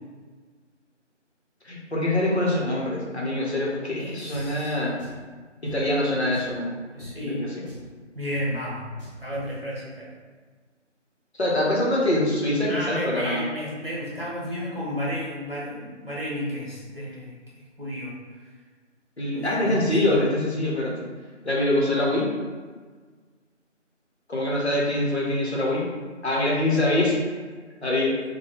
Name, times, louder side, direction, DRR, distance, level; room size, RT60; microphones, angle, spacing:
voice 1, 1.6-5.0 5.6-6.8 7.2-7.7 11.3-13.4 19.2-21.1 21.4-22.3 24.3-25.9 26.2-27.2 27.8-28.1, left 1 dB, 60° left, -4 dB, 0.9 m, -24 dB
voice 2, 4.0-4.8 6.9-7.4 8.1-8.9 9.2-10.1 12.7-18.1 19.3-20.2, equal, 50° right, -7 dB, 1.1 m, -32 dB
Drum, 4.3-4.5 5.0-5.2 5.7-5.8 6.3-6.6 7.0-7.1 7.7-7.9 8.3-8.5 9.0-9.5, left 1 dB, 35° left, 0.9 m, -42 dB
3.0 x 2.2 x 3.3 m, 1.5 s
figure-of-eight pair, 180°, 38 cm